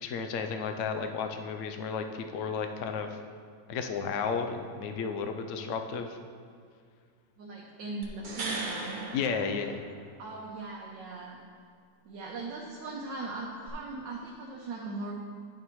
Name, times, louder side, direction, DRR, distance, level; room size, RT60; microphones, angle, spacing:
voice 1, 0.0-3.2 3.7-6.2 9.1-9.8, left 5 dB, 70° left, 6 dB, 0.7 m, -33 dB
voice 2, 7.4-9.0 10.2-11.4 12.0-15.1, right 3 dB, 80° right, -3 dB, 1.6 m, -39 dB
sound 1, 8.0-10.3 13.7-13.8, right 2 dB, 40° right, 0.8 m, -38 dB
10.5 x 7.2 x 3.1 m, 2.2 s
omnidirectional pair, 1.9 m